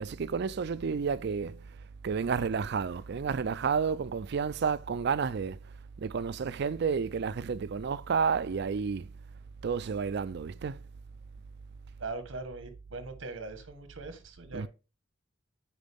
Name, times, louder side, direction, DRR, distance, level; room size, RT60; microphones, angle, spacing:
voice 1, 0.0-1.7 2.0-5.6 6.0-9.1 9.6-10.8 14.5-14.7, right 6 dB, 60° right, 0.4 m, -31 dB
voice 2, 12.0-14.7, right 3 dB, 85° right, 1.4 m, -41 dB
9.0 x 4.6 x 3.5 m
head